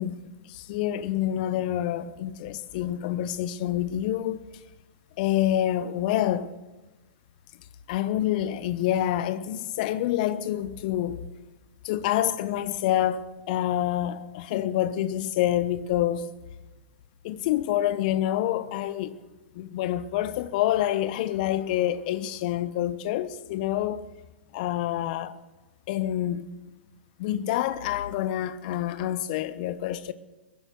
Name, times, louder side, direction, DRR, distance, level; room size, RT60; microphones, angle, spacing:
voice 1, 0.0-4.4 5.2-6.5 7.9-11.2 11.8-16.3 17.2-19.2 19.5-24.0 24.5-25.4 25.9-26.5 27.2-30.1, left 12 dB, 45° left, 1.0 m, -27 dB
22.0 x 10.0 x 6.2 m
figure-of-eight pair, 110°, 6 cm